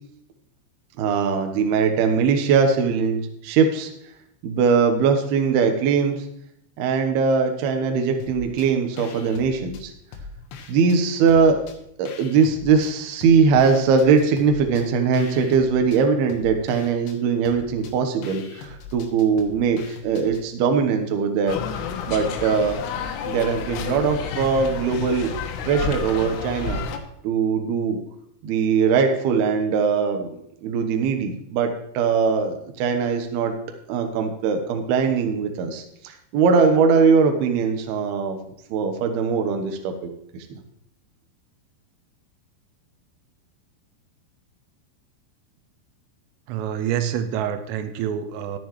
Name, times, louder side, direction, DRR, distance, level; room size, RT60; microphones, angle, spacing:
voice 1, 1.0-3.9 4.4-6.3 6.8-9.9 10.7-11.6 12.0-21.6 22.1-22.8 23.2-25.3 25.7-26.8 27.2-28.0 28.4-33.5 33.9-38.4 38.7-40.1, right 5 dB, 70° right, 5 dB, 2.6 m, -21 dB
sound 1, 8.2-8.7 9.0-11.0 11.3-12.9 13.2-20.5, left 4 dB, 70° left, 2.9 m, -42 dB
sound 2, 21.5-27.0, left 6 dB, 85° left, 3.7 m, -30 dB
voice 2, 46.5-48.6, right 9 dB, 85° right, 9 dB, 3.3 m, -27 dB
14.0 x 9.8 x 3.2 m, 0.74 s
omnidirectional pair, 5.8 m